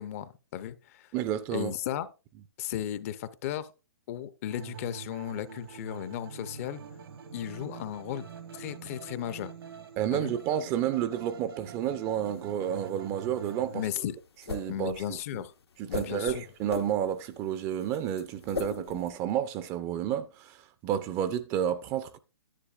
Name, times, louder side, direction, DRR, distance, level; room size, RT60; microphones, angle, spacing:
voice 1, 0.0-1.1 1.5-2.1 2.6-3.7 4.1-6.8 7.3-8.3 8.5-9.5 10.1-10.3 13.7-14.2 14.7-15.5 15.9-16.4, left 11 dB, 35° left, 0.6 m, -35 dB
voice 2, 1.1-1.7 10.0-13.8 14.5-15.4 15.8-20.6 20.8-22.2, right 10 dB, 20° right, 0.5 m, -31 dB
sound 1, 4.5-13.9, right 7 dB, 70° right, 1.2 m, -45 dB
sound 2, 12.3-19.1, left 4 dB, 85° left, 1.1 m, -39 dB
10.0 x 9.6 x 2.4 m
hypercardioid pair, 140°, 13 cm